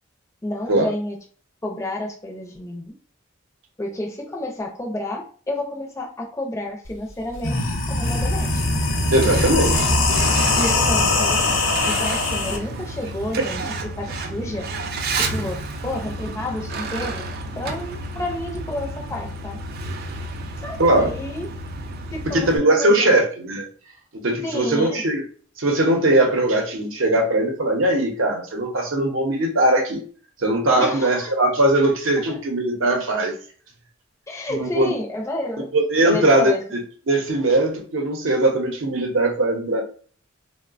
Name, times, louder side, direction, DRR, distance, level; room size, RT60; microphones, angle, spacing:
voice 1, 0.4-1.2 1.6-2.9 3.8-7.6 7.8-8.6 10.6-14.7 15.1-17.3 17.5-19.6 20.6-21.5 22.1-23.2 24.4-25.0 30.8-31.3 34.3-35.7 36.0-36.6, left 1 dB, 15° left, -1 dB, 0.4 m, -30 dB
sound 1, 6.9-7.0 7.3-12.6, left 2 dB, 60° left, 0.6 m, -21 dB
Truck, 8.0-22.6, right 2 dB, 50° right, 0.3 m, -31 dB
voice 2, 9.1-9.9 20.8-21.1 22.3-23.7 24.2-25.2 25.6-30.0 30.4-33.4 34.5-34.9 35.7-36.5 37.1-39.8, right 1 dB, 70° right, 2 dB, 0.7 m, -20 dB
3.0 x 2.1 x 2.4 m, 0.43 s
head